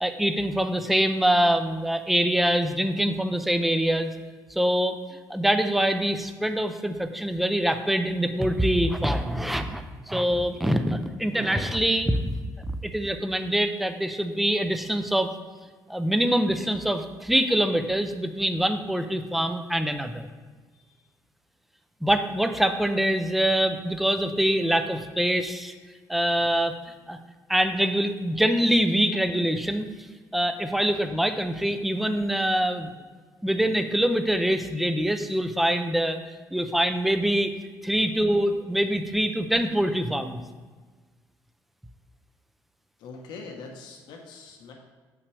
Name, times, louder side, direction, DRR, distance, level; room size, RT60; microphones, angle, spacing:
voice 1, 0.0-4.1 4.6-5.0 5.3-12.2 12.8-15.3 15.9-20.3 22.0-25.7 26.1-26.8 27.1-27.2 27.5-29.9 30.3-32.9 33.4-36.2 36.5-37.5 37.8-40.4, equal, ahead, 8 dB, 0.4 m, -24 dB
voice 2, 43.0-44.7, left 4 dB, 80° left, 1 dB, 1.0 m, -43 dB
8.0 x 5.9 x 3.3 m, 1.4 s
cardioid pair, 165°, 7 cm